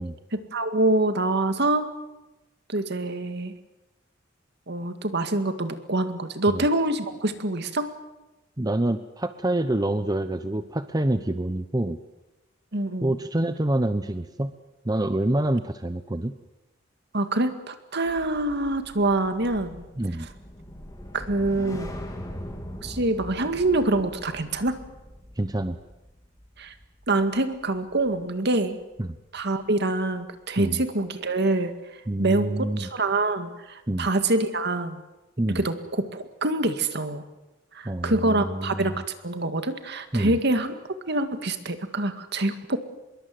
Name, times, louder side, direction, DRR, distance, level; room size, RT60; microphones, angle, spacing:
voice 1, 0.3-1.9 2.7-3.5 4.7-7.9 12.7-13.1 17.1-19.8 21.1-21.9 22.8-24.8 26.6-26.7 27.1-28.8 29.3-31.7 32.2-35.0 35.6-37.2 37.7-40.8 41.1-42.8, right 2 dB, 60° right, 8 dB, 2.0 m, -25 dB
voice 2, 8.6-12.0 13.0-14.5 14.8-16.3 20.0-20.3 25.4-25.8 29.0-29.2 30.6-30.8 32.1-32.9 33.9-34.1 35.4-35.7 37.8-39.0 40.1-40.4, right 1 dB, 20° right, 10 dB, 0.8 m, -27 dB
sound 1, 18.0-28.5 28.8-29.1, equal, 20° left, 3.6 m, -41 dB
25.0 x 22.0 x 7.8 m, 1.0 s
head